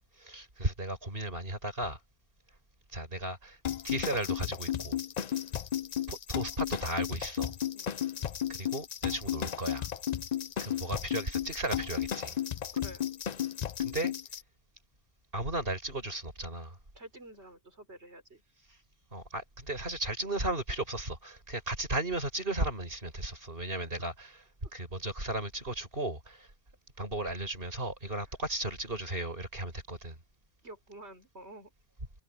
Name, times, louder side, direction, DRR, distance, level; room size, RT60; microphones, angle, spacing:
voice 1, 0.2-2.0 2.9-3.6 3.8-5.0 6.1-7.6 8.5-9.9 10.6-12.4 13.8-14.1 15.3-16.8 19.1-24.3 24.7-26.5 27.0-30.2, right 2 dB, 60° right, 6.3 m, -35 dB
sound 1, 3.6-14.4, left 10 dB, 50° left, 0.6 m, -34 dB
voice 2, 12.7-13.1 16.9-18.4 24.6-24.7 28.2-28.3 30.6-31.7, right 1 dB, 90° right, 5.7 m, -50 dB
omnidirectional pair, 1.1 m